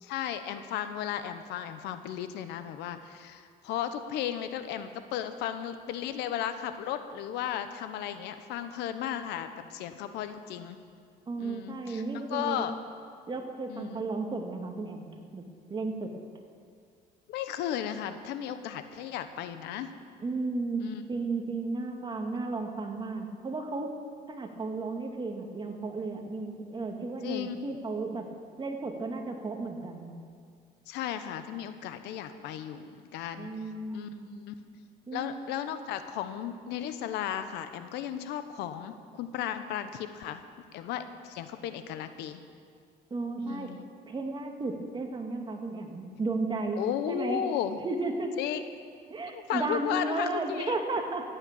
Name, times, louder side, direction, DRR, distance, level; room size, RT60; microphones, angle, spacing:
voice 1, 0.0-10.8 11.4-12.0 12.3-12.7 13.7-14.0 17.3-19.9 20.8-21.0 27.2-27.7 30.9-33.5 33.9-34.5 35.1-40.4 40.7-42.4 43.4-43.8 46.8-47.8 48.4-48.6 49.3-50.7, left 10 dB, 90° left, 10 dB, 1.0 m, -35 dB
voice 2, 11.3-12.7 13.3-16.1 20.2-20.8 21.1-23.9 24.3-28.2 28.6-30.1 33.4-34.3 35.1-35.4 43.1-43.7 44.1-46.8 47.1-47.4 47.8-48.3 49.1-51.2, right 3 dB, 25° right, 3 dB, 2.1 m, -34 dB
15.0 x 8.9 x 8.4 m, 2.2 s
cardioid pair, 110°, 17 cm